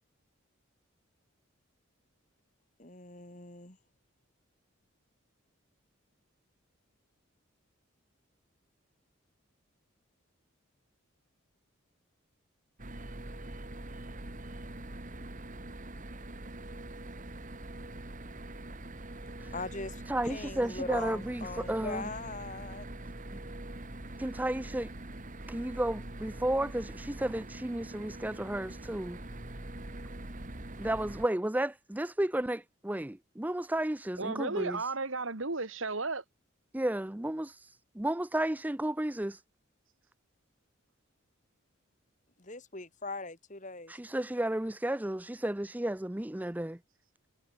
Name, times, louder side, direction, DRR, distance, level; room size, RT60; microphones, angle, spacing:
voice 1, 2.8-3.8 19.5-22.9 42.4-43.9, left 3 dB, 35° left, 2.9 m, -41 dB
sound 1, 12.8-31.3, right 1 dB, 40° right, 2.1 m, -43 dB
voice 2, 20.1-22.1 23.3-23.4 24.2-24.9 25.5-29.2 30.8-34.9 36.7-39.4 43.9-46.8, right 1 dB, 10° right, 0.4 m, -33 dB
voice 3, 34.2-36.2, right 3 dB, 70° right, 2.3 m, -34 dB
head